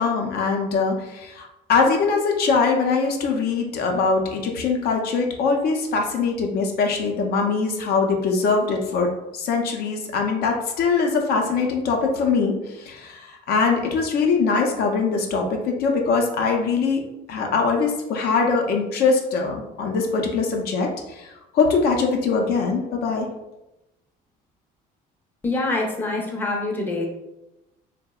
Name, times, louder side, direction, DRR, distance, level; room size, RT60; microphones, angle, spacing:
voice 1, 0.0-17.0 17.3-23.3, left 4 dB, 70° left, 2 dB, 0.4 m, -22 dB
voice 2, 25.4-27.0, left 2 dB, 10° left, -1 dB, 0.5 m, -25 dB
2.7 x 2.0 x 2.2 m, 0.94 s
cardioid pair, 110°, 17 cm